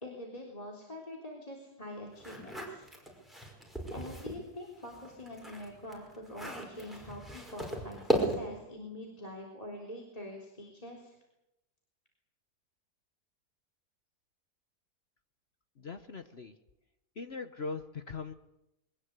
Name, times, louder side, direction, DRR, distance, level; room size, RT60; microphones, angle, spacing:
voice 1, 0.0-2.9 3.9-11.2, left 1 dB, 20° left, 1 dB, 3.7 m, -45 dB
sound 1, 2.2-4.4 4.8-8.6, right 1 dB, ahead, 5.2 m, -36 dB
voice 2, 15.8-16.5 17.2-18.3, left 4 dB, 45° left, 9 dB, 1.1 m, -40 dB
22.5 x 20.0 x 8.3 m, 0.89 s
omnidirectional pair, 1.7 m